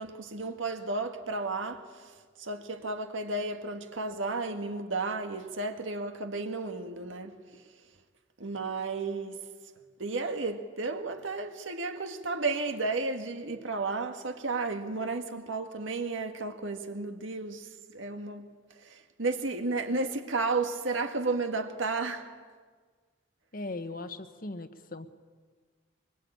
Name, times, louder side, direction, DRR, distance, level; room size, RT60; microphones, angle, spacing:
voice 1, 0.0-1.8 2.4-7.3 8.4-9.4 10.0-17.7 17.9-18.5 18.9-22.3, right 3 dB, 80° right, 1.8 m, -33 dB
voice 2, 23.5-25.1, left 2 dB, 45° left, 1.2 m, -39 dB
23.5 x 22.5 x 8.8 m
head